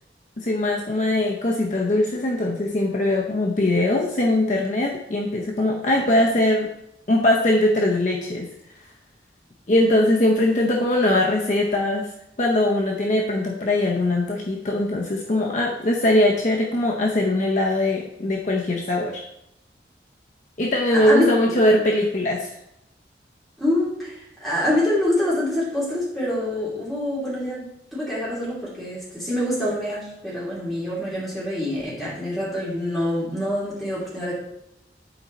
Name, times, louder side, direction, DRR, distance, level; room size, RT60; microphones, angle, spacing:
voice 1, 0.4-6.7 7.1-8.5 9.7-12.1 12.4-19.2 20.6-22.5, left 1 dB, 40° left, -1 dB, 0.7 m, -21 dB
voice 2, 20.9-21.4 23.6-27.6 27.9-34.3, left 1 dB, ahead, -9 dB, 2.8 m, -25 dB
8.7 x 4.2 x 4.0 m, 0.80 s
head